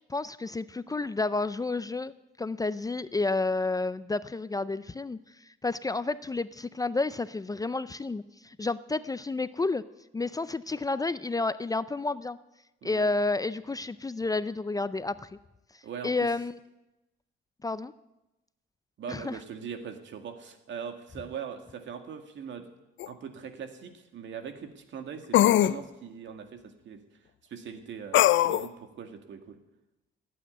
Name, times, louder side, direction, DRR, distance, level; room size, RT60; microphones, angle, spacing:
voice 1, 0.1-2.1 2.4-5.2 5.6-9.8 10.1-12.4 12.8-15.3 16.0-16.5 17.6-17.9 19.1-19.4, left 3 dB, 20° left, 15 dB, 0.5 m, -30 dB
voice 2, 12.8-13.1 15.8-16.3 19.0-22.7 23.1-27.0 27.4-29.6, right 7 dB, 70° right, 6 dB, 2.0 m, -41 dB
sound 1, 23.0-23.1 25.3-25.8 28.1-28.7, left 13 dB, 75° left, 0.5 m, -20 dB
16.0 x 8.6 x 9.3 m, 0.96 s
cardioid pair, 90°, 20 cm